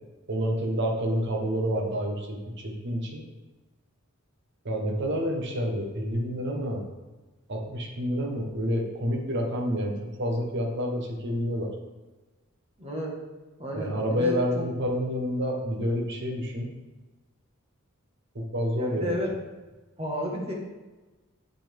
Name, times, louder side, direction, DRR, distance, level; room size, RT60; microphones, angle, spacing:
voice 1, 0.3-3.2 4.6-6.8 7.5-11.7 13.7-16.7 18.3-19.2, equal, 55° right, 2 dB, 1.1 m, -28 dB
voice 2, 12.8-13.1 13.6-14.6 18.8-19.3 20.0-20.5, equal, 30° right, -1 dB, 1.4 m, -32 dB
7.8 x 6.2 x 3.4 m, 1.2 s
head